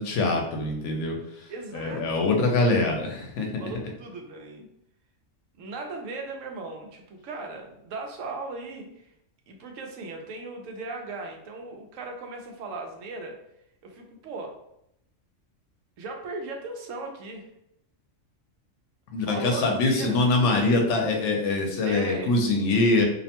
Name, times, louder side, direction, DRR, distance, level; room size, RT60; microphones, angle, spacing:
voice 1, 0.0-3.6 19.1-23.0, left 2 dB, 75° left, 1 dB, 0.9 m, -24 dB
voice 2, 1.5-2.8 3.6-4.7 5.6-9.1 9.5-13.4 13.8-14.5 16.0-17.5 19.2-20.2 21.8-22.3, right 3 dB, 85° right, 2 dB, 1.0 m, -37 dB
2.6 x 2.1 x 2.8 m, 0.78 s
omnidirectional pair, 1.3 m